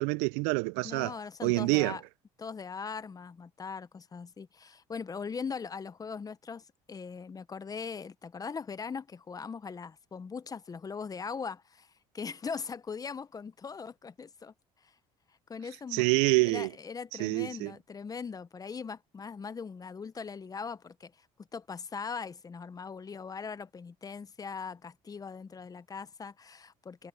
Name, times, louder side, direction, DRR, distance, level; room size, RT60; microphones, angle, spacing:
voice 1, 0.0-1.1 1.4-2.0 15.9-16.7 17.2-17.7, right 28 dB, 85° right, 0.4 m, -27 dB
voice 2, 0.8-2.0 2.4-14.5 14.8-14.9 15.5-16.1 16.4-21.3 21.5-27.1, left 5 dB, 30° left, 0.9 m, -40 dB
supercardioid pair, 85°, 13 cm